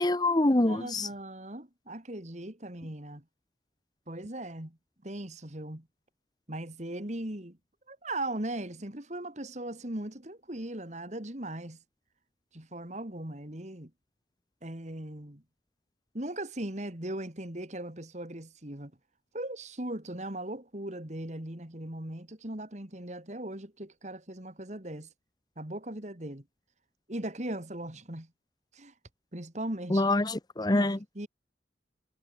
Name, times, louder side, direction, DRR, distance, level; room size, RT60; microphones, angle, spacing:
voice 1, 0.0-1.1 29.9-31.0, left 2 dB, 20° left, 0.9 m, -25 dB
voice 2, 0.7-3.2 4.1-4.8 5.0-5.9 6.5-7.6 7.9-11.8 12.5-13.9 14.6-15.4 16.1-18.9 19.3-25.1 25.6-26.4 27.1-28.3 28.7-28.9 29.3-30.1 30.7-31.3, right 1 dB, 40° right, 2.7 m, -38 dB
head